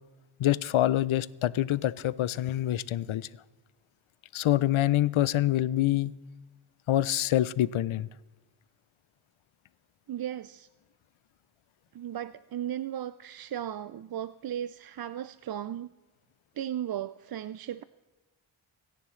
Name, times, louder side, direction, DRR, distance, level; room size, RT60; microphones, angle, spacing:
voice 1, 0.4-3.3 4.3-6.1 6.9-8.1, left 13 dB, 80° left, 19 dB, 0.6 m, -26 dB
voice 2, 10.1-10.7 11.9-15.9 16.6-17.8, right 10 dB, 50° right, 15 dB, 0.5 m, -36 dB
25.5 x 10.5 x 3.2 m, 1.2 s
cardioid pair, 60°, 47 cm